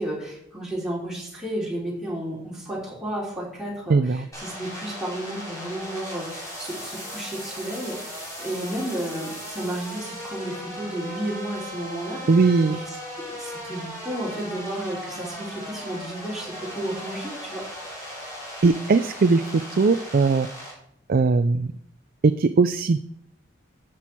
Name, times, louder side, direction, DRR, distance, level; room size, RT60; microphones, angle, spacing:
voice 1, 0.0-12.2 12.7-13.0 13.3-17.7, right 1 dB, 5° right, -5 dB, 3.3 m, -32 dB
voice 2, 3.9-4.3 12.3-12.8 18.6-19.4 19.7-20.5 21.1-21.7 22.2-23.0, right 4 dB, 50° right, 10 dB, 0.4 m, -19 dB
sound 1, 4.3-20.7, equal, 15° left, 3.3 m, -37 dB
13.0 x 6.1 x 4.5 m, 0.73 s
head